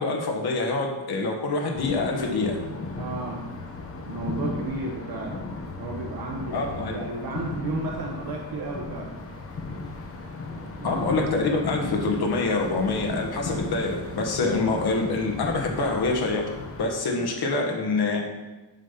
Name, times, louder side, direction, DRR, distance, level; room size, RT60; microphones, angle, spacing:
voice 1, 0.0-2.6 6.5-7.0 10.8-16.4 16.8-18.2, left 3 dB, 55° left, 1 dB, 1.4 m, -26 dB
sound 1, 1.7-16.9, left 3 dB, 30° left, 0.9 m, -36 dB
voice 2, 3.0-3.4 4.0-5.4 5.7-9.1 10.8-11.0, right 2 dB, 55° right, -1 dB, 1.1 m, -33 dB
7.4 x 5.3 x 5.7 m, 1.1 s
wide cardioid pair, 155°, 44 cm